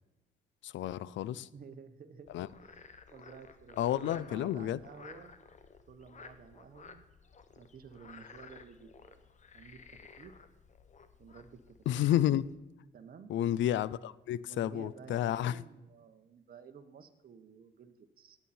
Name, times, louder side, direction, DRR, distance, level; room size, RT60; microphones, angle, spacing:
voice 1, 0.6-1.5 2.3-2.5 3.8-4.8 11.9-12.4 13.3-15.6, left 12 dB, 70° left, 0.5 m, -31 dB
voice 2, 1.3-2.8 3.1-5.4 5.9-7.0 7.6-9.2 9.5-10.3 11.2-11.6 11.9-12.1 12.9-13.3 14.4-18.4, right 6 dB, 50° right, 1.1 m, -52 dB
Frog, 2.3-12.5, left 5 dB, 35° left, 1.0 m, -55 dB
15.5 x 9.0 x 4.3 m
cardioid pair, 90°, 20 cm